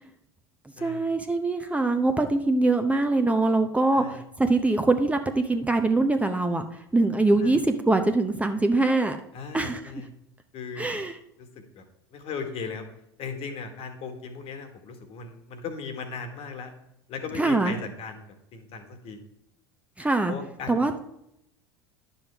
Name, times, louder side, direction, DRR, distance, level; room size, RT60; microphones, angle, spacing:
voice 1, 0.8-6.7 6.9-9.2 9.5-9.8 10.8-11.2 17.3-17.8 20.0-20.3 20.7-20.9, right 2 dB, 10° right, 6 dB, 0.7 m, -23 dB
voice 2, 9.3-10.1 10.5-10.9 11.4-11.5 11.7-11.8 12.1-12.9 13.2-16.7 17.1-19.2 20.3-20.7, left 5 dB, 50° left, 6 dB, 1.7 m, -37 dB
10.5 x 7.1 x 3.5 m, 0.78 s
hypercardioid pair, 80°, 13 cm